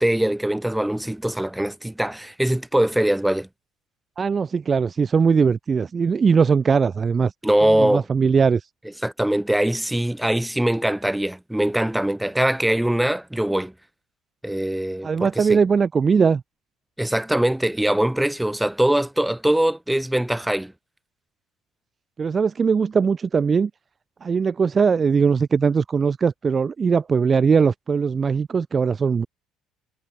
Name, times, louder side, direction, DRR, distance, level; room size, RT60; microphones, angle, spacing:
voice 1, 0.0-3.5 7.4-8.1 9.0-13.7 14.4-15.6 17.0-20.7, right 1 dB, 5° right, 6.9 m, -22 dB
voice 2, 4.2-7.3 7.8-8.6 15.0-16.4 22.2-23.7 24.2-29.3, right 5 dB, 30° right, 2.5 m, -20 dB
figure-of-eight pair, 55°, 0 cm